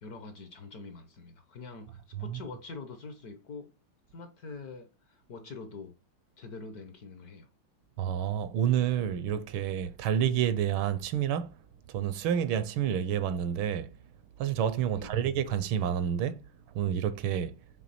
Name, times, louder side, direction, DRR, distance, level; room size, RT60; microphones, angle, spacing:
voice 1, 0.0-3.7 4.1-5.9 6.4-7.5 14.9-15.2, left 3 dB, 60° left, 1.1 m, -45 dB
voice 2, 8.0-11.5 11.9-13.9 14.4-16.4 16.7-17.5, right 9 dB, 80° right, 1.4 m, -29 dB
7.4 x 3.3 x 4.2 m
omnidirectional pair, 2.3 m